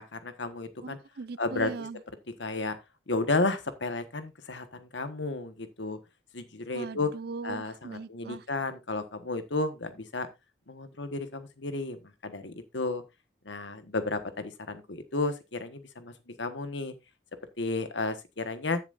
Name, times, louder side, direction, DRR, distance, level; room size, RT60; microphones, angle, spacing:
voice 1, 0.0-1.0 1.4-1.7 2.4-2.8 3.1-6.0 6.3-7.1 7.4-10.3 10.7-12.0 12.2-13.0 13.4-16.9 17.6-18.8, left 3 dB, 75° left, 1.4 m, -32 dB
voice 2, 0.8-2.0 6.7-8.4, right 4 dB, 55° right, 0.4 m, -39 dB
14.0 x 7.4 x 2.5 m
head